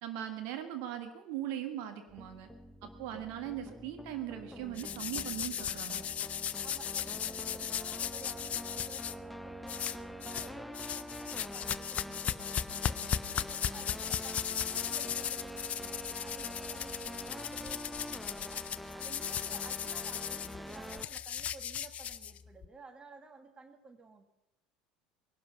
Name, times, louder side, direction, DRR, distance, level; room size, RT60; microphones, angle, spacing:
voice 1, 0.0-2.5 2.8-6.0, right 11 dB, 55° right, 7 dB, 1.6 m, -40 dB
sound 1, 2.1-21.1, equal, ahead, 0.7 m, -45 dB
sound 2, 4.8-9.1 9.7-10.5 10.7-22.6, left 9 dB, 35° left, 0.5 m, -37 dB
voice 2, 6.6-24.3, right 4 dB, 25° right, 9 dB, 1.6 m, -54 dB
20.0 x 12.0 x 5.6 m, 0.92 s
figure-of-eight pair, 65°, 4 cm